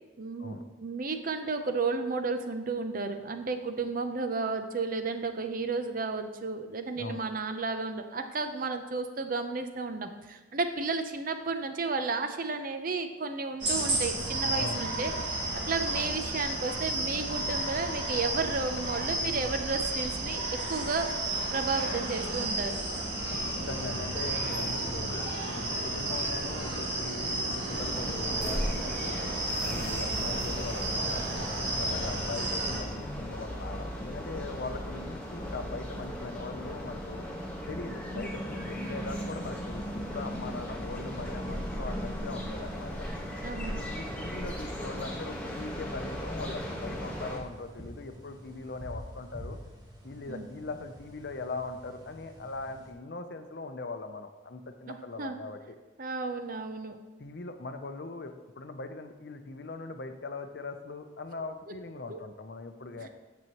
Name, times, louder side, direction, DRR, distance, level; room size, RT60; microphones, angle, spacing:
voice 1, 0.2-21.1 21.5-22.8 38.1-38.3 43.4-43.9 50.3-50.5 54.9-55.4 56.0-57.0 62.1-62.2 63.0-63.1, right 4 dB, 45° right, 7 dB, 0.6 m, -33 dB
sound 1, 13.6-32.8, right 2 dB, 60° right, 2.0 m, -32 dB
voice 2, 23.3-29.2 29.6-37.2 37.7-43.1 43.9-49.6 50.0-55.6 57.2-63.1, left 3 dB, 55° left, 7 dB, 0.6 m, -40 dB
sound 2, 27.7-47.4, equal, 5° left, 1.3 m, -37 dB
sound 3, 38.2-52.9, equal, 20° right, 1.2 m, -49 dB
9.2 x 7.3 x 3.0 m, 1.3 s
head